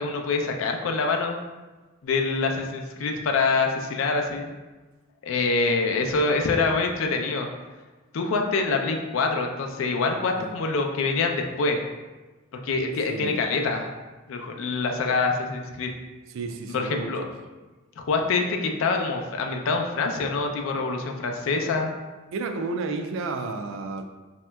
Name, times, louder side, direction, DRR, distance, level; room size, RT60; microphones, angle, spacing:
voice 1, 0.0-1.4 2.0-4.5 5.2-7.5 8.1-11.9 12.6-13.9 14.3-15.9 16.7-17.2 18.1-21.9, left 4 dB, 75° left, 3 dB, 0.4 m, -25 dB
voice 2, 10.4-10.7 13.1-13.4 16.3-17.1 22.3-24.0, right 3 dB, 75° right, 5 dB, 0.3 m, -32 dB
3.2 x 2.8 x 2.2 m, 1.2 s
head